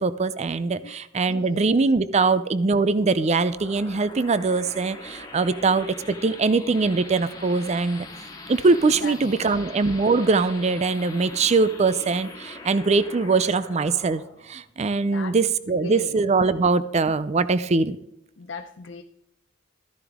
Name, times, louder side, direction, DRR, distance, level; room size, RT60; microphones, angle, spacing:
voice 1, 0.0-8.1 8.5-18.0, right 4 dB, 35° right, 15 dB, 0.5 m, -22 dB
voice 2, 1.3-1.6 9.0-9.5 15.0-15.3 15.8-16.2 18.4-19.0, left 4 dB, 65° left, 5 dB, 0.6 m, -38 dB
sound 1, 2.9-16.1, left 2 dB, 20° left, 1.8 m, -43 dB
14.0 x 10.5 x 3.6 m, 0.79 s
head